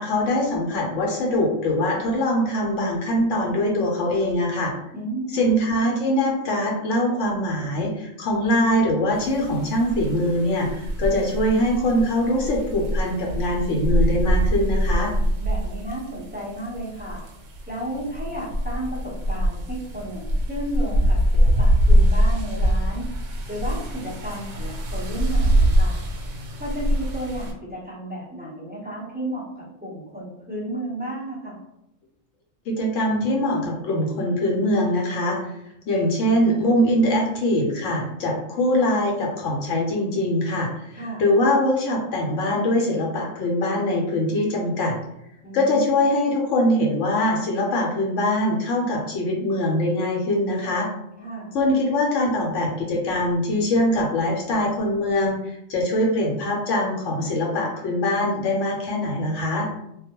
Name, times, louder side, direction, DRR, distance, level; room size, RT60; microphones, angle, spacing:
voice 1, 0.0-4.7 5.3-15.1 32.7-35.4 35.9-45.0 45.5-50.9 51.5-59.7, left 1 dB, 70° left, -1 dB, 0.9 m, -23 dB
voice 2, 4.9-5.4 15.4-17.2 17.7-23.0 23.5-26.0 26.6-31.6 40.9-41.2 45.4-46.0 51.2-51.5, right 1 dB, 10° right, -9 dB, 0.4 m, -33 dB
sound 1, 9.2-27.5, equal, 85° right, 1.0 m, -23 dB
2.3 x 2.1 x 2.8 m, 0.81 s
omnidirectional pair, 1.4 m